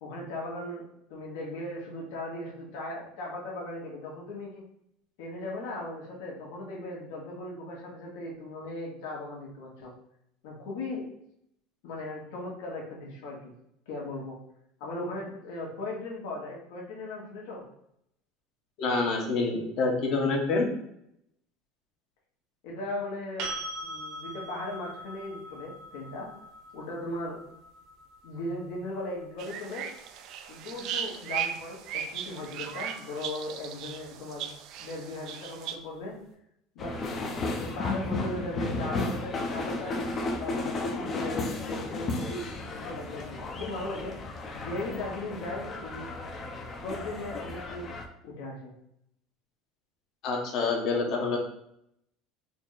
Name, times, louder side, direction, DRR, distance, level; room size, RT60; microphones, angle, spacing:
voice 1, 0.0-4.7 5.2-9.9 10.4-11.0 11.8-13.5 13.9-14.4 14.8-17.7 22.6-23.5 23.8-26.3 26.7-27.4 28.2-29.9 30.5-34.5 34.8-36.2 36.7-37.0 37.5-40.0 40.4-44.2 44.5-46.1 46.8-47.9 48.2-48.7, left 2 dB, 80° left, -3 dB, 1.3 m, -38 dB
voice 2, 18.8-20.7 50.2-51.4, left 3 dB, 55° left, 1 dB, 1.0 m, -27 dB
sound 1, 23.4-31.2 34.0-34.1, right 1 dB, 75° right, 1.3 m, -43 dB
sound 2, 29.4-35.7, right 9 dB, 55° right, 0.3 m, -37 dB
sound 3, 36.8-48.1, left 2 dB, 35° left, 0.6 m, -34 dB
4.2 x 2.1 x 3.8 m, 0.76 s
supercardioid pair, 125°, 0 cm